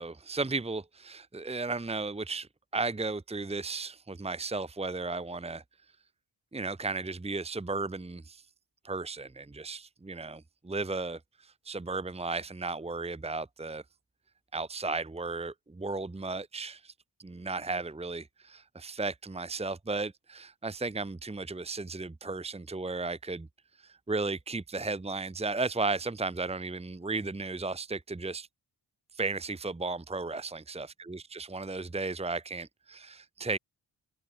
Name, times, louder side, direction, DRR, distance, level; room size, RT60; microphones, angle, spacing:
voice 1, 0.0-5.6 6.5-8.4 8.8-13.8 14.5-16.9 17.2-23.5 23.8-28.5 29.1-33.6, right 3 dB, 15° right, 1.3 m, -35 dB
wide cardioid pair, 170°, 45 cm